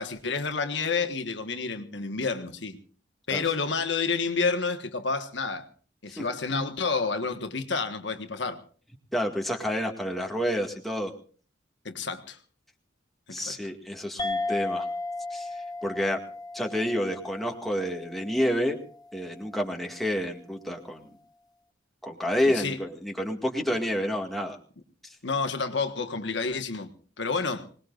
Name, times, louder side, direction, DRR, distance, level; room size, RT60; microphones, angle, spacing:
voice 1, 0.0-2.8 3.3-5.7 6.0-8.6 11.8-12.4 13.3-13.5 22.5-22.8 25.2-26.9 27.2-27.7, left 4 dB, 65° left, 1.5 m, -29 dB
voice 2, 9.1-11.1 13.3-14.9 15.3-16.2 16.5-18.8 19.1-21.1 22.0-24.6 25.0-25.2, equal, ahead, 2.0 m, -29 dB
sound 1, 14.2-19.1, left 2 dB, 20° left, 0.8 m, -35 dB
25.5 x 19.5 x 2.5 m
head